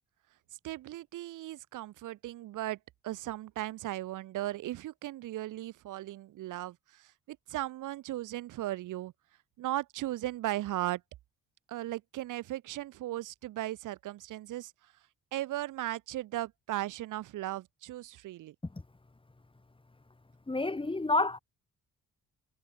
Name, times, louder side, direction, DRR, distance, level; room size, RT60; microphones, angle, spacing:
voice 1, 0.6-2.8 3.0-9.1 9.6-11.0 11.7-14.7 15.3-18.6, right 15 dB, 85° right, 7.1 m, -37 dB
voice 2, 20.5-21.4, left 2 dB, 15° left, 4.2 m, -29 dB
cardioid pair, 90°, 30 cm